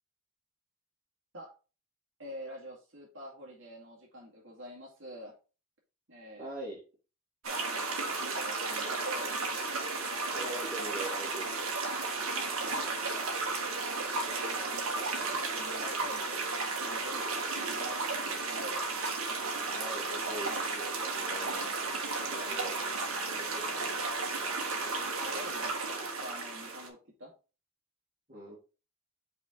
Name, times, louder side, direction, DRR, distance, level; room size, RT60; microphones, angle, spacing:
voice 1, 2.2-5.3 6.1-6.5 7.4-9.4 12.5-13.1 14.5-18.8 20.4-20.7 23.7-23.9 25.2-27.3, equal, 60° right, -2 dB, 2.1 m, -47 dB
voice 2, 6.4-6.8 10.3-12.0 19.6-21.7 22.3-22.8 23.4-23.9 28.3-28.6, right 1 dB, 40° right, -3 dB, 2.7 m, -43 dB
sound 1, 7.4-26.9, right 3 dB, 85° right, 1.6 m, -34 dB
5.6 x 4.5 x 3.7 m, 0.33 s
head